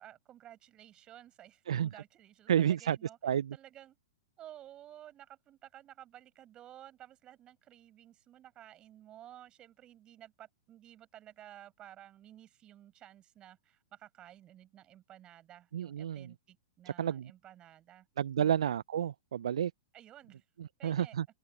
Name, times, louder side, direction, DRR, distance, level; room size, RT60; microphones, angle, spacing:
voice 1, 0.0-4.0 4.4-18.1 19.9-20.5 20.8-21.2, right 12 dB, 25° right, 7.7 m, -54 dB
voice 2, 1.7-2.0 2.5-3.0 3.2-3.6 15.7-16.3 17.0-17.3 18.2-19.7 20.6-21.2, right 9 dB, 65° right, 0.7 m, -30 dB
figure-of-eight pair, 110°, 3 cm